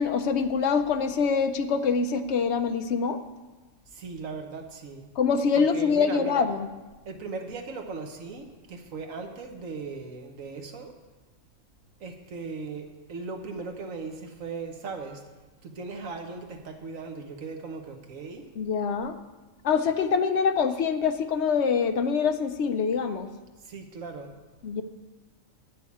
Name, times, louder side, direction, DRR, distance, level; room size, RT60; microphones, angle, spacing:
voice 1, 0.0-3.2 5.2-6.7 18.6-19.2 19.6-23.3 24.6-24.8, left 5 dB, 65° left, 9 dB, 0.9 m, -25 dB
voice 2, 4.0-5.1 5.6-6.5 7.1-10.9 12.0-15.2 15.6-18.4 23.7-24.3, right 4 dB, 90° right, 4 dB, 1.5 m, -38 dB
9.7 x 6.3 x 8.4 m, 1.2 s
omnidirectional pair, 1.3 m